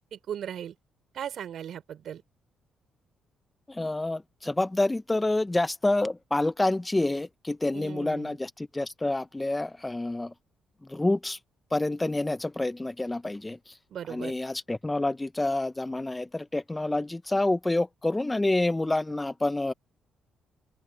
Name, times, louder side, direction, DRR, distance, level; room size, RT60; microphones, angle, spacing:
voice 1, 0.1-0.7 1.1-2.2 7.7-8.4 13.9-14.3, right 9 dB, 70° right, 4.3 m, -37 dB
voice 2, 3.7-10.3 10.9-11.4 11.7-13.8 14.1-19.7, left 2 dB, 15° left, 1.0 m, -28 dB
open air
supercardioid pair, 65°, 0 cm